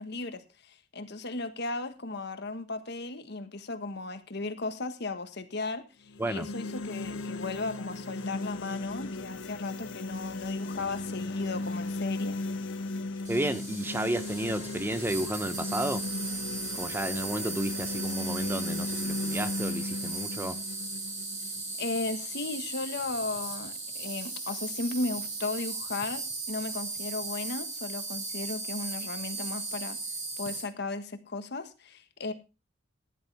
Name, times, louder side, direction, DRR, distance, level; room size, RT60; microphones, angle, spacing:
voice 1, 0.0-12.4 21.8-26.2 26.5-30.0 30.4-32.3, left 3 dB, 60° left, 1.5 m, -36 dB
sound 1, 6.1-22.1, left 2 dB, 75° left, 1.1 m, -36 dB
sound 2, 8.7-14.2, left 1 dB, 30° left, 2.5 m, -55 dB
Insect, 13.2-30.6, right 3 dB, 40° right, 5.3 m, -37 dB
voice 2, 13.3-16.1 16.8-20.6, right 1 dB, 10° right, 0.6 m, -32 dB
15.0 x 11.0 x 3.4 m
head